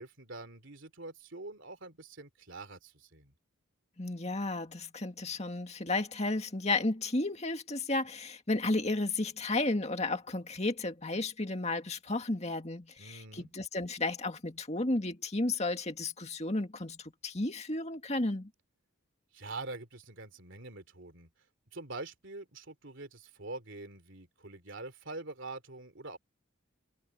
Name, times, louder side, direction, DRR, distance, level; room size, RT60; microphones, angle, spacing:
voice 1, 0.0-3.3 13.0-13.5 19.3-21.3 21.7-26.2, right 2 dB, 55° right, 3.4 m, -45 dB
voice 2, 4.0-18.5, left 2 dB, 30° left, 2.1 m, -33 dB
head